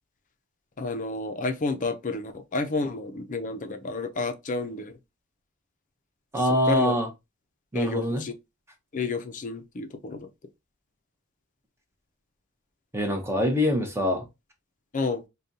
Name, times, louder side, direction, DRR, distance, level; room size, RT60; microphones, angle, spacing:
voice 1, 0.8-4.9 6.7-7.0 7.7-8.3 8.9-10.3 14.9-15.2, left 3 dB, 35° left, 0.5 m, -30 dB
voice 2, 6.3-7.1 7.7-8.2 12.9-14.3, left 1 dB, 10° right, 0.7 m, -24 dB
5.1 x 2.3 x 2.7 m
head